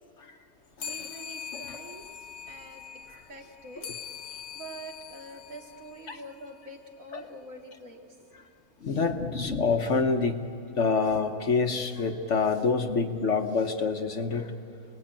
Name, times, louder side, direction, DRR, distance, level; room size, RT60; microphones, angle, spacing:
sound 1, 0.8-6.6, left 7 dB, 75° left, 1.5 m, -42 dB
voice 1, 0.8-2.1 2.5-2.8 3.3-3.9 4.5-8.3 9.1-9.7, right 2 dB, 60° right, 1 dB, 2.6 m, -45 dB
voice 2, 8.8-10.4 10.8-14.5, left 4 dB, 55° left, 6 dB, 1.2 m, -26 dB
29.5 x 19.0 x 8.8 m, 2.7 s
omnidirectional pair, 1.6 m